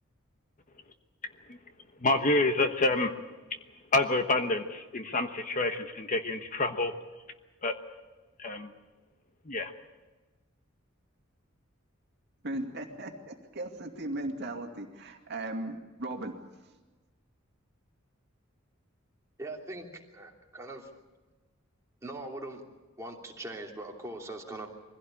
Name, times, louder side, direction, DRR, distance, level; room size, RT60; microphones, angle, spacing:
voice 1, 2.0-3.1 3.5-3.6 3.9-6.9 7.6-7.8 8.4-8.7 9.4-9.7, left 2 dB, 40° left, 7 dB, 1.2 m, -28 dB
voice 2, 12.4-16.4, right 1 dB, 55° right, 3 dB, 2.4 m, -37 dB
voice 3, 19.4-19.9 20.1-20.9 22.0-22.6 23.0-24.7, right 2 dB, 15° right, -1 dB, 3.0 m, -41 dB
23.5 x 16.5 x 8.7 m, 1.2 s
head